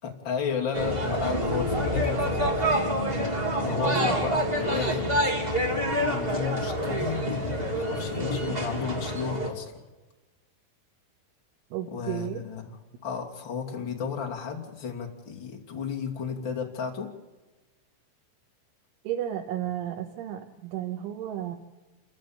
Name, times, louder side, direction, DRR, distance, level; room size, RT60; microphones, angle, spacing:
voice 1, 0.0-2.9 3.6-5.3 6.0-9.7 11.9-12.8 13.0-17.1, left 6 dB, 30° left, 2 dB, 2.6 m, -33 dB
sound 1, 0.7-9.5, equal, 15° right, 2.5 m, -27 dB
voice 2, 3.6-4.2 11.7-12.4 19.1-21.6, right 11 dB, 90° right, 2 dB, 3.8 m, -33 dB
29.0 x 14.5 x 8.9 m, 1.2 s
omnidirectional pair, 5.4 m